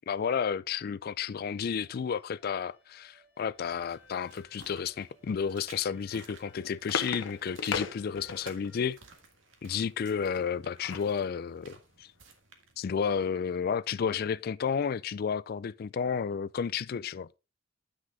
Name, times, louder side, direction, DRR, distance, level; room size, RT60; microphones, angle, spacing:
voice 1, 0.1-9.0 9.6-12.1 12.8-17.3, left 6 dB, 50° left, 0.3 m, -32 dB
sound 1, 1.3-8.8, left 2 dB, 10° right, 2.8 m, -62 dB
sound 2, 3.9-13.9, right 4 dB, 80° right, 1.7 m, -56 dB
sound 3, 6.2-8.7 10.3-11.2 11.6-11.7 12.0-12.2, left 5 dB, 80° left, 0.9 m, -37 dB
9.6 x 6.1 x 3.7 m
head